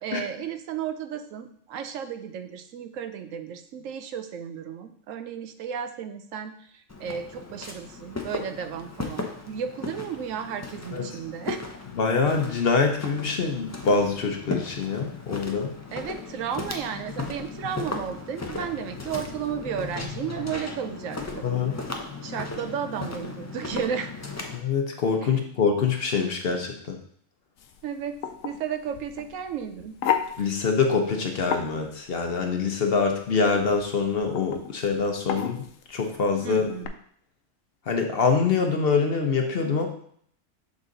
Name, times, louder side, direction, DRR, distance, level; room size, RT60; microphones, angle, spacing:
voice 1, 0.0-11.6 15.9-21.4 22.2-24.1 25.2-25.3 27.8-28.2 28.4-30.0 36.4-36.9, right 8 dB, 90° right, 8 dB, 1.0 m, -33 dB
Walk footsteps, 6.9-24.6, left 3 dB, 25° left, 0.3 m, -36 dB
voice 2, 12.0-15.7 21.4-21.7 24.5-27.0 30.4-36.7 37.9-39.9, left 5 dB, 55° left, 4 dB, 0.9 m, -25 dB
sound 1, 27.6-36.9, left 9 dB, 85° left, 1.0 m, -35 dB
6.4 x 3.9 x 3.8 m, 0.63 s
omnidirectional pair, 1.3 m